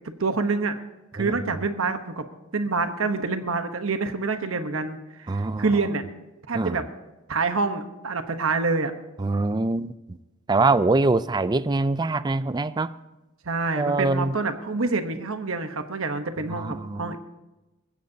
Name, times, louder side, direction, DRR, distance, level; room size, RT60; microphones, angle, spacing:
voice 1, 0.2-0.8 1.1-2.2 2.5-6.0 6.5-6.8 7.3-8.9 13.4-17.2, right 4 dB, 70° right, 1.0 m, -27 dB
voice 2, 5.3-5.7 6.5-6.8 9.2-10.2 10.5-12.9 13.7-14.4 16.4-17.2, right 3 dB, 20° right, 0.4 m, -24 dB
21.5 x 15.5 x 2.8 m
head